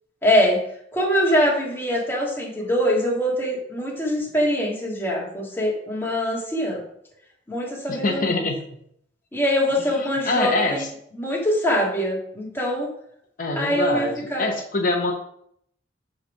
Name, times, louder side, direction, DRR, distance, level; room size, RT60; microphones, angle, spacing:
voice 1, 0.2-0.6 0.9-6.8 7.5-8.3 9.3-10.9 11.1-12.9 13.6-14.5, equal, 15° left, -3 dB, 1.7 m, -23 dB
voice 2, 7.9-8.6 10.0-10.9 13.4-15.1, left 2 dB, 50° left, 1 dB, 0.9 m, -24 dB
8.0 x 3.3 x 5.4 m, 0.70 s
head